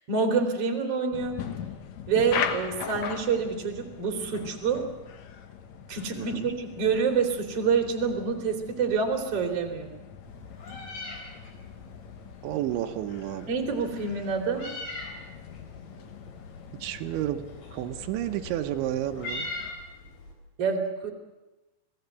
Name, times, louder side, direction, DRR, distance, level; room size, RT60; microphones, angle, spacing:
voice 1, 0.1-1.4 2.1-4.8 5.9-9.9 13.5-14.7 20.6-21.1, right 5 dB, 35° right, 3 dB, 3.5 m, -27 dB
sound 1, 1.1-19.7, left 8 dB, 70° left, 1.6 m, -40 dB
voice 2, 6.2-6.5 12.4-13.5 16.8-17.4 17.7-19.5, right 13 dB, 85° right, 6 dB, 3.4 m, -31 dB
Meow, 10.2-20.3, left 2 dB, 55° left, 5.8 m, -42 dB
26.5 x 18.5 x 8.2 m, 1.1 s
omnidirectional pair, 5.2 m